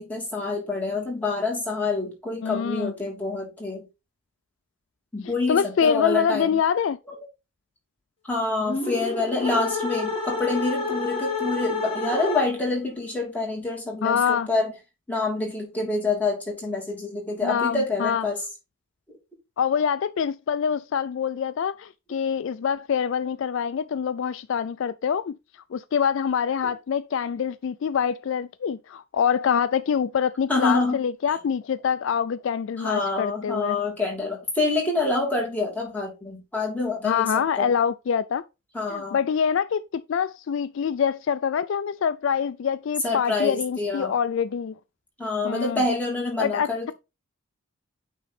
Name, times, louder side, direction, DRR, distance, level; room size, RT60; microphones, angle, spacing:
voice 1, 0.0-3.8 5.1-6.6 7.1-7.2 8.3-14.7 15.1-18.4 30.5-31.0 32.8-37.7 38.7-39.2 43.0-44.1 45.2-46.9, left 3 dB, 5° left, 2.9 m, -27 dB
voice 2, 2.4-2.9 5.5-7.0 14.0-14.5 17.4-18.2 19.6-25.4 25.7-33.8 37.0-38.4 38.9-44.7 45.4-45.8 46.4-46.9, left 7 dB, 60° left, 0.3 m, -25 dB
sound 1, 8.6-12.8, left 3 dB, 25° left, 2.2 m, -29 dB
9.2 x 3.8 x 4.1 m
head